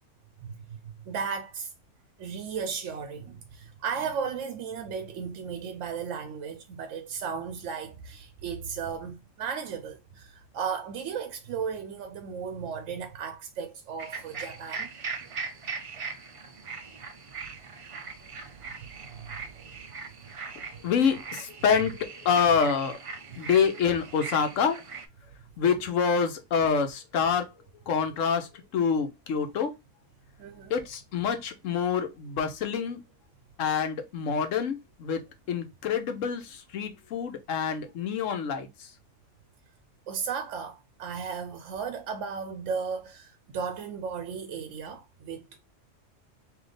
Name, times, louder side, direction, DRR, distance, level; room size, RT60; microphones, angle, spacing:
voice 1, 0.4-1.7 2.2-14.9 18.0-18.1 18.7-19.4 23.3-23.4 25.7-25.8 30.4-30.7 40.1-45.6, right 6 dB, 80° right, 0.9 m, -35 dB
sound 1, 14.0-25.1, right 5 dB, 60° right, 0.3 m, -40 dB
voice 2, 20.8-23.0 23.4-24.8 25.6-27.5 27.9-29.7 30.7-33.0 33.6-35.2 35.5-38.7, left 6 dB, 90° left, 1.1 m, -26 dB
3.3 x 2.8 x 3.9 m
omnidirectional pair, 1.3 m